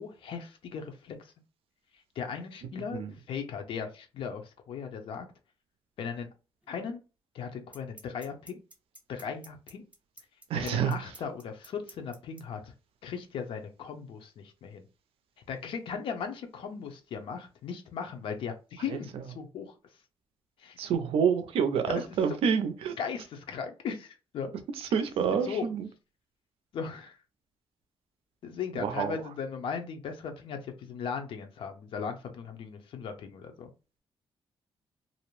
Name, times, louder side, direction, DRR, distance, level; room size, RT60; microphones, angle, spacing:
voice 1, 0.0-1.3 2.2-5.3 6.0-6.3 6.7-7.0 7.3-8.6 9.1-9.8 10.5-12.7 13.0-14.8 15.5-19.1 19.3-19.7 20.6-20.8 21.9-22.0 23.0-24.5 25.4-25.6 26.7-27.2 28.4-33.7, left 6 dB, 65° left, 0.5 m, -37 dB
sound 1, 6.6-6.7 7.7-12.4, right 2 dB, 15° right, 0.5 m, -49 dB
voice 2, 10.5-11.0 18.9-19.0 20.8-23.0 24.8-25.9 28.7-29.2, right 7 dB, 75° right, 0.4 m, -28 dB
2.5 x 2.0 x 3.0 m
wide cardioid pair, 165°, 10 cm